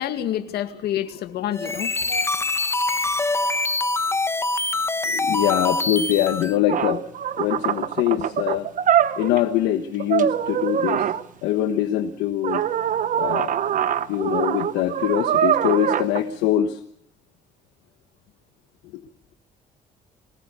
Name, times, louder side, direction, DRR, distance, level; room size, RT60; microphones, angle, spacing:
voice 1, 0.0-2.3, left 11 dB, 70° left, 2.1 m, -28 dB
sound 1, 1.5-6.6, left 2 dB, 15° left, 1.0 m, -24 dB
voice 2, 5.1-7.0 7.4-8.7 9.2-11.0 11.4-12.6 13.2-13.6 14.1-16.8, left 11 dB, 90° left, 1.3 m, -23 dB
sound 2, 6.4-6.5 6.7-9.5 10.0-11.2 12.4-16.2, right 9 dB, 50° right, 1.0 m, -23 dB
23.0 x 19.0 x 6.9 m
cardioid pair, 110°, 17 cm